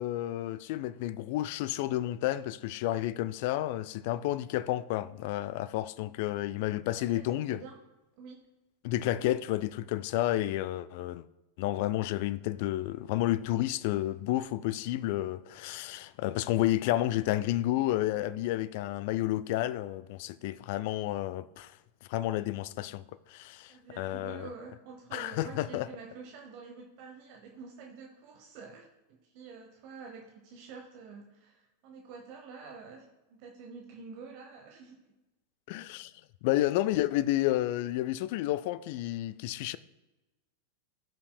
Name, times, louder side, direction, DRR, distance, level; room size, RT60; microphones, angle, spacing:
voice 1, 0.0-7.6 8.8-11.2 11.6-21.7 22.1-23.0 23.3-24.5 25.1-25.9 35.7-36.1 36.4-39.8, left 15 dB, 50° left, 0.3 m, -31 dB
voice 2, 7.0-7.7 8.2-8.5 23.7-35.0, right 5 dB, 45° right, 0.9 m, -48 dB
15.0 x 5.7 x 2.2 m
figure-of-eight pair, 90°, 0 cm